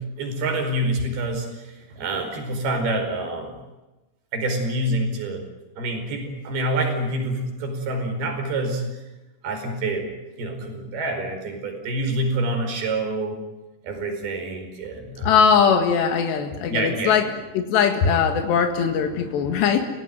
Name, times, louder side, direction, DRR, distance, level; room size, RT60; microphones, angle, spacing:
voice 1, 0.0-3.5 4.3-5.4 5.8-8.8 9.4-10.1 10.4-13.4 13.8-15.4 16.7-17.2, right 1 dB, 65° right, 5 dB, 6.7 m, -27 dB
voice 2, 15.2-19.9, left 6 dB, 85° left, 5 dB, 3.9 m, -20 dB
29.5 x 17.5 x 9.4 m, 1.1 s
omnidirectional pair, 4.9 m